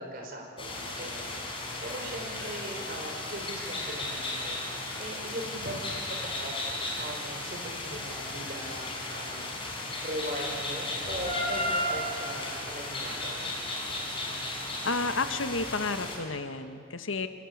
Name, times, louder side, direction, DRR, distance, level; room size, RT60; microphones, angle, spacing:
voice 1, 0.0-13.4, right 1 dB, 45° right, 2 dB, 4.9 m, -40 dB
sound 1, 0.6-16.2, left 2 dB, 25° left, 5.4 m, -35 dB
voice 2, 14.8-17.3, left 3 dB, 85° left, 9 dB, 1.4 m, -31 dB
25.5 x 22.5 x 8.6 m, 2.3 s
head